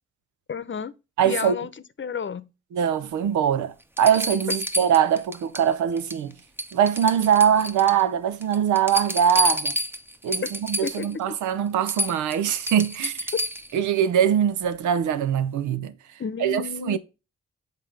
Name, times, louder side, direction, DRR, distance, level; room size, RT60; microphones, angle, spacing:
voice 1, 0.5-0.9 1.2-1.7 2.0-2.5 10.4-10.5 10.8-11.1 16.2-17.0, left 7 dB, 40° left, 0.8 m, -31 dB
voice 2, 1.2-1.5 2.7-6.3 6.7-9.7 10.2-13.3 13.7-15.9 16.4-17.0, right 9 dB, 90° right, 0.7 m, -22 dB
sound 1, 3.3-3.4 4.0-5.7 6.0-6.3 6.6-8.0 8.4-11.1 11.5-11.6 11.9-13.8 15.5-15.6, equal, 10° right, 0.8 m, -29 dB
7.4 x 3.7 x 5.5 m
supercardioid pair, 45°, 29 cm